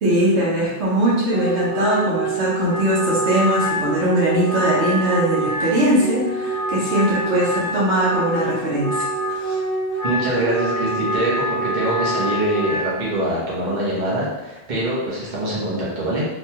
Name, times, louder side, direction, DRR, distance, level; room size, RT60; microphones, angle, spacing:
voice 1, 0.0-9.6, right 1 dB, 80° right, -7 dB, 1.2 m, -20 dB
Wind instrument woodwind instrument, 1.3-13.0, right 1 dB, 20° right, 0.7 m, -25 dB
voice 2, 10.0-16.2, right 1 dB, 45° right, -7 dB, 1.0 m, -24 dB
3.3 x 2.3 x 2.8 m, 1.1 s
omnidirectional pair, 1.1 m